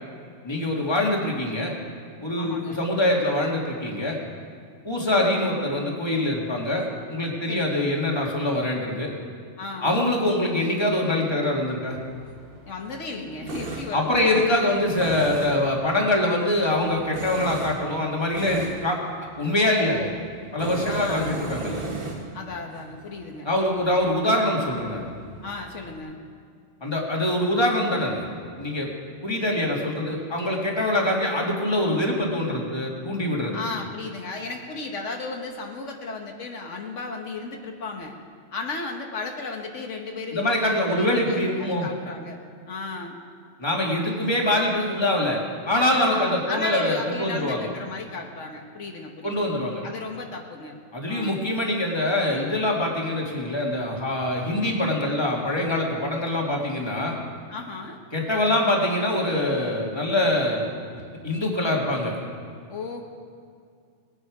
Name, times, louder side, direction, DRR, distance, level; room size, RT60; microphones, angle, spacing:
voice 1, 0.4-1.7 2.2-4.2 4.8-9.1 9.8-12.0 13.9-19.0 19.4-20.1 20.5-21.8 23.5-25.1 26.8-28.2 28.6-28.9 29.2-33.6 40.3-41.9 43.6-47.7 49.2-49.8 50.9-57.2 58.1-60.8 61.2-62.1, left 1 dB, 20° left, -1 dB, 1.9 m, -24 dB
voice 2, 2.4-2.8 7.5-7.7 9.6-9.9 12.7-14.4 19.6-20.2 20.9-21.4 22.3-23.5 25.4-26.2 33.5-38.1 38.5-42.4 42.7-43.1 46.0-49.4 49.8-50.8 51.1-51.4 57.5-58.0 62.7-63.0, left 3 dB, 80° left, 2 dB, 1.5 m, -34 dB
Tools, 11.9-26.0, right 2 dB, 50° right, 1.5 m, -38 dB
20.0 x 9.9 x 4.8 m, 2.2 s
omnidirectional pair, 1.3 m